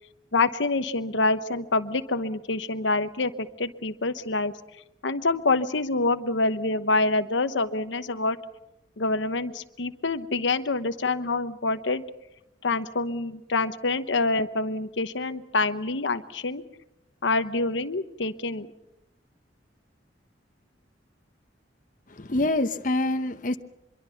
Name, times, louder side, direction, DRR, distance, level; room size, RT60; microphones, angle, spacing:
voice 1, 0.3-4.5 5.0-8.4 9.0-12.0 12.6-16.6 17.2-18.7, left 3 dB, 80° left, 10 dB, 1.0 m, -26 dB
voice 2, 22.1-23.6, left 2 dB, 45° left, 8 dB, 0.9 m, -26 dB
25.0 x 23.0 x 5.7 m, 0.90 s
head